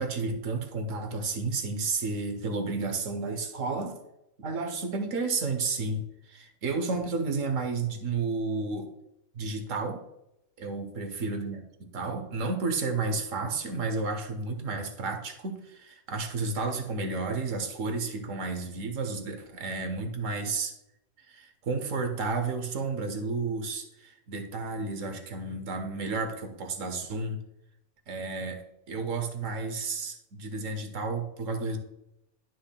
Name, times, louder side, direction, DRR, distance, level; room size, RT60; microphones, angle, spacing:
voice 1, 0.0-4.0 4.4-8.9 9.3-10.0 10.6-20.7 21.2-27.4 28.1-28.6 28.9-31.8, right 3 dB, 80° right, 5 dB, 1.4 m, -32 dB
11.5 x 6.4 x 2.3 m, 0.85 s
omnidirectional pair, 1.3 m